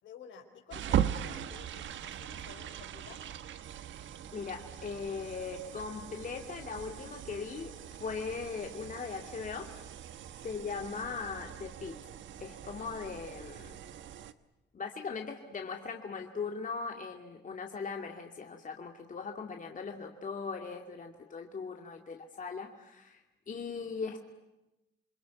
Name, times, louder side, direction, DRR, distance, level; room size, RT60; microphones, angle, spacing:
voice 1, 0.0-3.2, left 7 dB, 75° left, 4 dB, 4.9 m, -52 dB
sound 1, 0.7-14.3, right 10 dB, 70° right, 1.3 m, -40 dB
voice 2, 4.3-9.7 10.4-12.0 12.4-13.8 14.7-23.2 23.5-24.2, left 5 dB, 40° left, 3 dB, 2.4 m, -39 dB
28.5 x 21.5 x 9.5 m, 0.96 s
cardioid pair, 90°, 20 cm